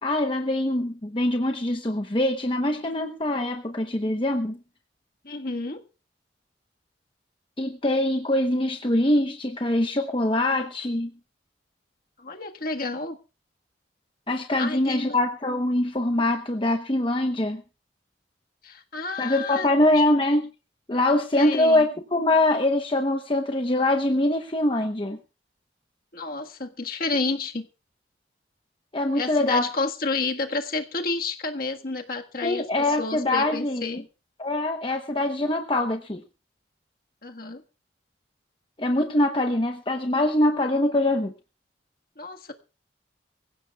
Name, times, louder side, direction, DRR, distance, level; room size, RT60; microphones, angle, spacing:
voice 1, 0.0-4.6 7.6-11.1 14.3-17.6 19.2-20.5 20.9-25.2 28.9-29.7 32.4-33.8 34.4-36.2 38.8-41.3, left 1 dB, 25° left, 4 dB, 0.9 m, -23 dB
voice 2, 5.2-5.8 12.2-13.2 14.6-15.2 18.6-20.0 21.4-21.9 26.1-27.7 29.1-34.1 37.2-37.6 42.2-42.5, left 3 dB, 50° left, 4 dB, 1.6 m, -30 dB
24.0 x 16.0 x 2.4 m, 0.33 s
head